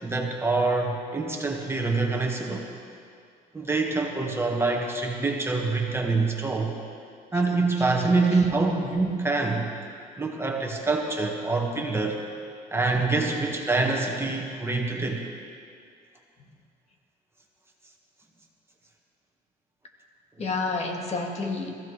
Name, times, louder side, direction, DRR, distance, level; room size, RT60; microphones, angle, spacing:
voice 1, 0.0-2.7 3.5-6.7 7.3-9.7 10.2-12.2 12.7-15.2, right 3 dB, 15° right, 0 dB, 1.6 m, -25 dB
voice 2, 20.4-21.7, left 3 dB, 40° left, 2 dB, 1.8 m, -30 dB
22.0 x 15.0 x 3.3 m, 2.3 s
cardioid pair, 110°, 17 cm